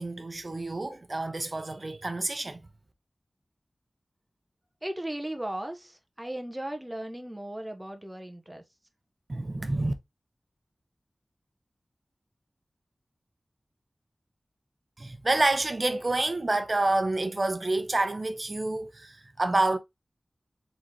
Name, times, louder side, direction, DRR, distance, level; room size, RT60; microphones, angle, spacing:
voice 1, 0.0-2.6 9.3-9.9 15.0-19.8, right 2 dB, 50° right, 0.8 m, -28 dB
voice 2, 4.8-8.6, right 1 dB, 15° right, 0.8 m, -36 dB
4.0 x 3.8 x 3.1 m
wide cardioid pair, 50°, 0 cm